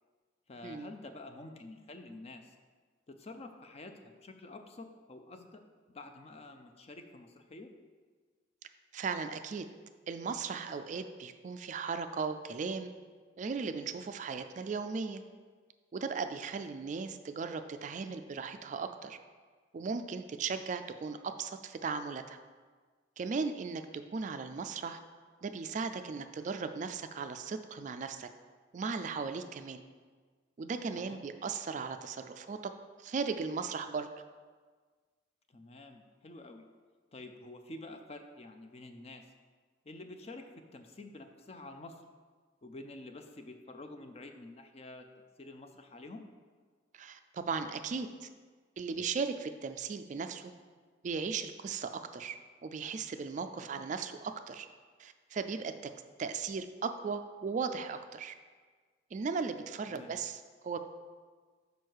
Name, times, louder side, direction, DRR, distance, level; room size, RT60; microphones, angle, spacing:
voice 1, 0.5-2.5 3.1-5.6 5.9-7.7 30.9-31.2 35.5-36.6 37.1-39.2 39.8-42.0 42.6-46.2 53.5-53.8 59.9-60.1, left 2 dB, 35° left, 6 dB, 0.5 m, -49 dB
voice 2, 8.9-9.7 10.1-12.9 13.4-15.2 15.9-19.2 19.7-22.4 23.2-23.8 24.1-25.0 25.4-28.3 28.7-29.8 30.6-32.7 33.0-34.1 46.9-48.3 48.8-50.5 51.0-52.4 52.6-54.7 55.0-55.7 56.2-58.3 59.1-60.8, right 5 dB, 40° right, 9 dB, 0.3 m, -37 dB
6.3 x 5.2 x 4.6 m, 1.5 s
head